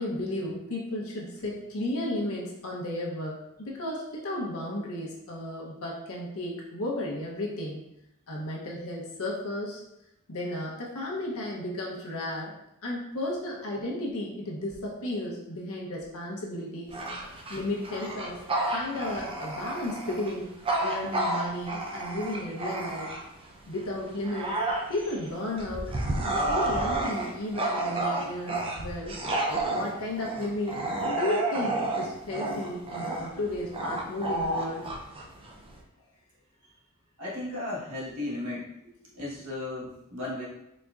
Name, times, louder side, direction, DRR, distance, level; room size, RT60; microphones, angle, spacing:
voice 1, 0.0-7.8 8.3-9.8 10.3-12.5 12.8-16.9 17.5-18.4 18.7-20.5 20.8-23.1 23.7-24.5 24.9-25.9 26.2-29.2 29.7-30.8 31.1-34.9, left 1 dB, 65° left, -3 dB, 0.8 m, -33 dB
Bark / Growling, 16.9-23.4 23.9-35.8, right 2 dB, 25° right, 0.4 m, -31 dB
voice 2, 37.2-38.6 39.1-40.5, left 2 dB, 75° right, -6 dB, 1.2 m, -35 dB
4.1 x 3.5 x 2.4 m, 0.84 s
head